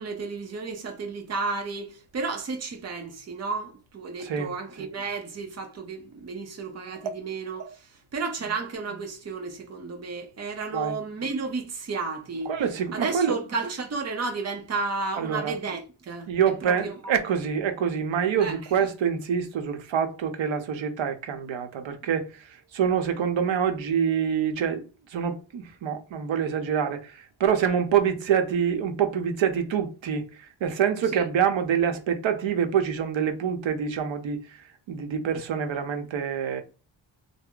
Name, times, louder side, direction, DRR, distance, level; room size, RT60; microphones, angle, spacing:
voice 1, 0.0-12.5 12.9-16.3 16.6-17.2 18.4-18.6 31.1-31.2, right 4 dB, 35° right, 0.7 m, -32 dB
voice 2, 4.2-4.5 10.7-11.0 12.5-13.4 15.2-15.5 16.3-22.3 22.7-24.8 25.1-30.3 30.6-34.4 34.9-36.6, right 8 dB, 80° right, 0.8 m, -26 dB
3.3 x 2.1 x 3.7 m
wide cardioid pair, 160°, 46 cm